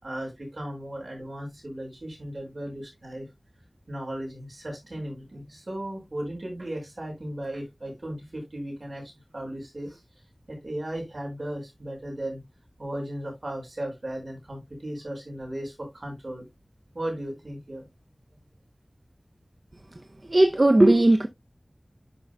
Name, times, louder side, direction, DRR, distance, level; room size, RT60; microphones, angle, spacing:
voice 1, 0.0-3.3 3.9-10.0 10.5-12.4 12.8-16.4 16.9-17.8, right 1 dB, 70° right, 5.0 m, -36 dB
voice 2, 20.3-21.3, right 1 dB, 50° right, 0.6 m, -17 dB
11.0 x 5.4 x 2.2 m
wide cardioid pair, 50°, 0 cm